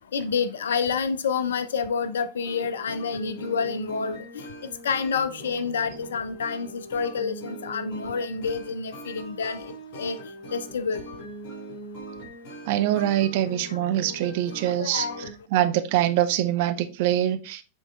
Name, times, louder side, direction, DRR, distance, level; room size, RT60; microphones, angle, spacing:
voice 1, 0.1-10.2 10.5-11.0 13.7-13.8 14.2-15.3, left 5 dB, 65° left, 0.6 m, -29 dB
sound 1, 2.4-15.3, right 1 dB, 40° left, 2.9 m, -41 dB
voice 2, 12.7-15.1 15.5-17.6, right 12 dB, 50° right, 0.7 m, -24 dB
7.3 x 3.9 x 3.3 m
figure-of-eight pair, 90°, 0 cm